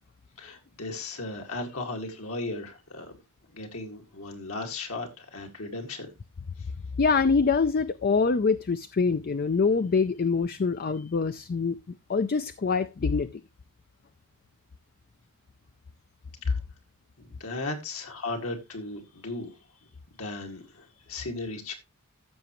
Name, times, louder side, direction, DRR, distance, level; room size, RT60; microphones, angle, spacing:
voice 1, 0.4-3.1 3.5-6.1 16.5-16.6 17.2-19.6 20.2-21.8, left 2 dB, 70° left, 2.2 m, -36 dB
voice 2, 7.0-11.8 12.1-13.3, left 4 dB, 40° left, 0.4 m, -25 dB
15.0 x 6.7 x 3.1 m
head